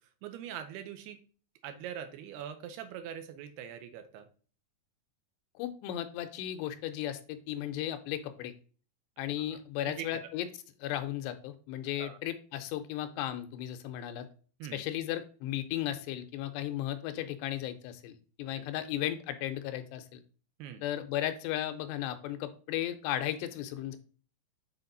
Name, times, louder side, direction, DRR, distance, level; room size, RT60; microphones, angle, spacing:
voice 1, 0.2-1.2 1.6-4.3 9.9-10.0 12.0-12.2 14.6-14.8 18.5-18.7 20.6-20.8, right 9 dB, 80° right, 8 dB, 2.6 m, -42 dB
voice 2, 5.6-8.5 9.2-10.5 10.8-14.3 14.7-18.1 18.4-20.2 20.8-24.0, left 12 dB, 85° left, 9 dB, 2.8 m, -35 dB
7.0 x 4.2 x 3.9 m, 0.40 s
omnidirectional pair, 4.9 m